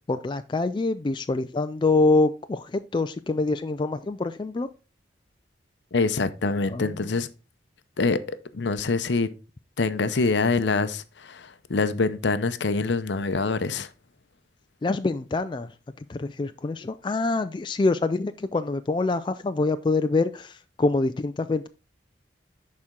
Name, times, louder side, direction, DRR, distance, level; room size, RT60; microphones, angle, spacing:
voice 1, 0.1-4.7 6.7-7.1 14.8-15.7 16.0-21.7, left 3 dB, 25° left, 0.3 m, -25 dB
voice 2, 5.9-7.3 8.0-9.3 9.8-13.9, left 3 dB, 75° left, 0.6 m, -25 dB
10.5 x 4.3 x 3.7 m
head